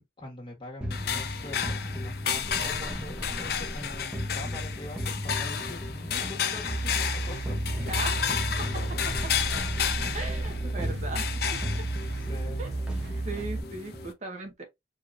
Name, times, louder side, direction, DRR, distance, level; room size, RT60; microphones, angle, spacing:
voice 1, 0.2-7.9 12.2-12.6, left 1 dB, 30° left, 1.8 m, -44 dB
sound 1, 0.8-14.1, left 1 dB, 5° right, 1.0 m, -36 dB
sound 2, 0.9-14.1, left 8 dB, 60° left, 0.6 m, -33 dB
sound 3, 6.6-13.6, right 2 dB, 65° right, 1.1 m, -33 dB
voice 2, 7.9-8.2 8.6-9.3 10.1-11.4 12.6-12.7 13.2-14.6, right 2 dB, 40° right, 1.0 m, -38 dB
4.9 x 3.0 x 2.6 m
head